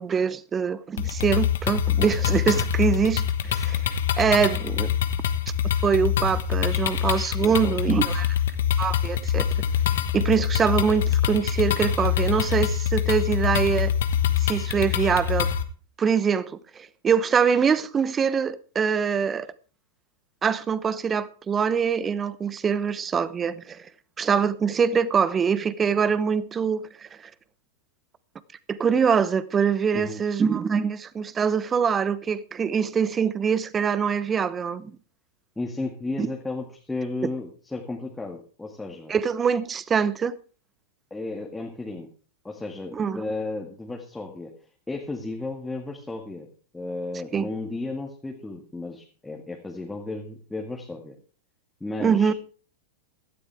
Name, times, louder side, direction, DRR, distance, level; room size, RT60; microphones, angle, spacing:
voice 1, 0.0-4.9 5.8-8.3 8.8-9.6 10.1-13.9 14.4-15.5 16.0-19.5 20.4-23.8 24.2-27.1 28.7-34.9 36.2-36.3 39.1-40.3 42.9-43.2 47.3-47.5 52.0-52.3, right 6 dB, 20° right, 0.9 m, -24 dB
sound 1, 1.0-15.6, left 9 dB, 65° left, 1.2 m, -25 dB
voice 2, 7.4-8.0 29.9-30.2 35.6-39.1 41.1-42.1 42.4-44.5 44.9-46.5 46.7-51.1 51.8-52.3, left 2 dB, 10° left, 2.1 m, -34 dB
16.5 x 12.5 x 3.5 m
hypercardioid pair, 100°, 0 cm